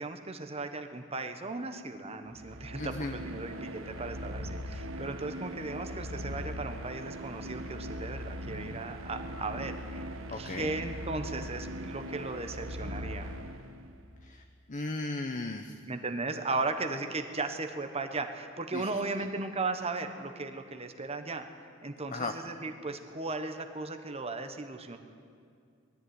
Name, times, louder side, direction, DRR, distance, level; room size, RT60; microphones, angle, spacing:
voice 1, 0.0-13.3 15.9-21.5 21.8-25.0, right 3 dB, 30° right, 7 dB, 1.3 m, -36 dB
sound 1, 2.3-14.0, equal, 90° right, 1.4 m, -40 dB
voice 2, 2.8-3.1 10.3-10.7 14.3-14.4 14.7-15.7 18.7-18.8 22.1-22.3, left 2 dB, 40° left, 5 dB, 0.9 m, -35 dB
20.5 x 13.5 x 9.6 m, 2.3 s
head